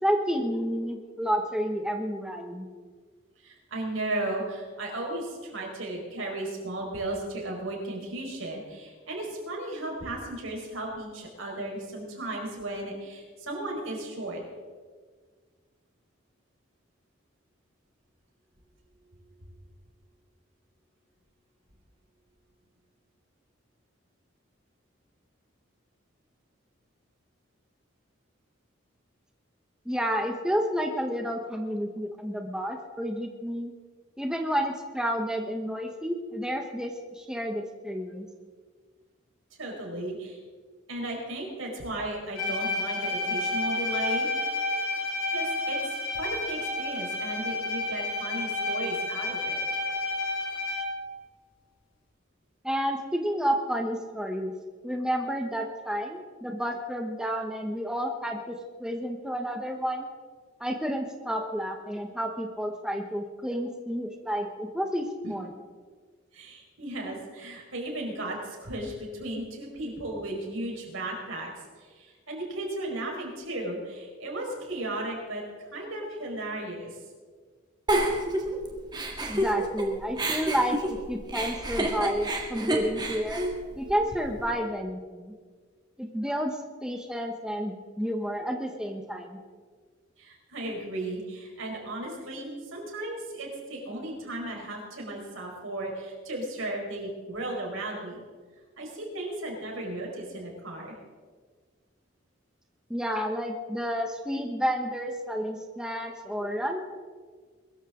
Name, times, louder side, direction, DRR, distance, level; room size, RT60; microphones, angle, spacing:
voice 1, 0.0-2.6 29.8-33.7 34.2-38.3 52.6-54.5 54.8-60.1 60.6-65.5 79.3-83.4 83.8-85.3 86.0-89.4 102.9-106.8, equal, 5° right, 3 dB, 1.0 m, -30 dB
voice 2, 3.4-14.4 39.6-40.4 40.9-44.6 45.3-49.6 65.2-65.3 66.3-71.5 71.8-77.0 90.2-98.2 98.8-100.9, right 1 dB, 90° right, -1 dB, 5.0 m, -35 dB
Bowed string instrument, 42.3-51.1, left 2 dB, 85° left, 5.9 m, -30 dB
Giggle, 77.9-79.8 80.2-84.4, right 1 dB, 20° right, 1.9 m, -29 dB
22.0 x 14.0 x 3.8 m, 1.5 s
head